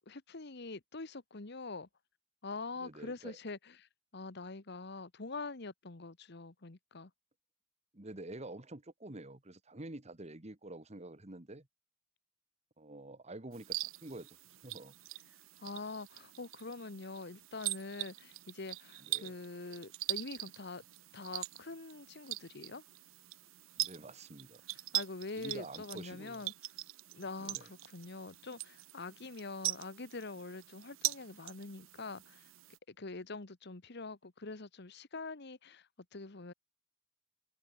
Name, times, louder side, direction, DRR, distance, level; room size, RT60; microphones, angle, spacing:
voice 1, 0.1-1.9 2.4-7.1 15.6-20.8 21.1-22.8 24.9-26.5 27.1-32.4 32.9-36.5, left 3 dB, 60° left, 1.3 m, -45 dB
voice 2, 2.8-3.4 7.9-11.7 12.8-14.9 19.0-19.4 23.8-24.6 25.3-26.5 27.4-27.6, right 2 dB, 35° right, 1.7 m, -48 dB
sound 1, 13.5-32.8, right 17 dB, 85° right, 0.6 m, -42 dB
head